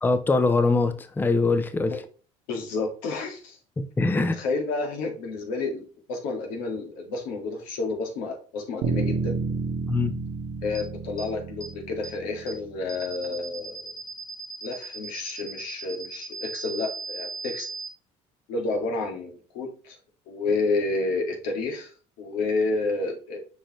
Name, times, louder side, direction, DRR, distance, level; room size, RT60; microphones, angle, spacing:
voice 1, 0.0-2.0 3.8-4.4 9.9-10.1, left 3 dB, 15° left, 0.6 m, -23 dB
voice 2, 2.5-3.6 4.1-9.4 10.6-13.8 14.6-17.7 18.5-20.0 20.3-21.9 22.2-23.4, left 3 dB, 85° left, 2.0 m, -30 dB
sound 1, 8.8-13.2, right 4 dB, 70° right, 1.3 m, -31 dB
sound 2, 10.7-10.8 11.2-11.3 11.6-11.7 12.0-12.1 12.5-12.6 12.9-17.9, right 4 dB, 40° left, 1.3 m, -37 dB
6.8 x 5.0 x 3.1 m
cardioid pair, 105°, 14 cm